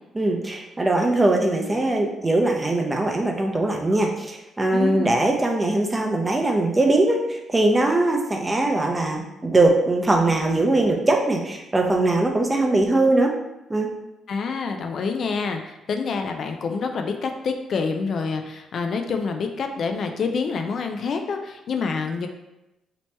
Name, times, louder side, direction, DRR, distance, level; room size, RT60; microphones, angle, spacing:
voice 1, 0.1-13.3 13.7-13.9, right 2 dB, 20° right, 1 dB, 0.6 m, -21 dB
voice 2, 4.7-5.1 14.3-22.3, left 5 dB, 60° left, 5 dB, 0.3 m, -27 dB
3.0 x 2.9 x 3.3 m, 0.95 s
cardioid pair, 90°, 0 cm